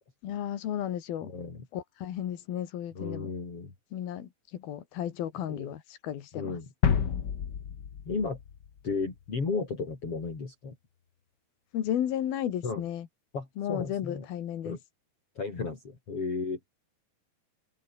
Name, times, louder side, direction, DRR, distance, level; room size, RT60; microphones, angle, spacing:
voice 1, 0.2-1.3 1.7-3.3 3.9-6.6 11.7-13.1 13.6-14.8, left 10 dB, 80° left, 3.9 m, -34 dB
voice 2, 1.2-1.7 2.9-3.7 5.5-5.7 6.3-7.1 8.1-8.4 8.8-10.8 12.6-12.8 13.3-14.3 14.6-14.8 15.4-16.6, left 4 dB, 40° left, 5.2 m, -34 dB
sound 1, 6.8-9.3, left 8 dB, 60° left, 1.1 m, -30 dB
omnidirectional pair, 4.2 m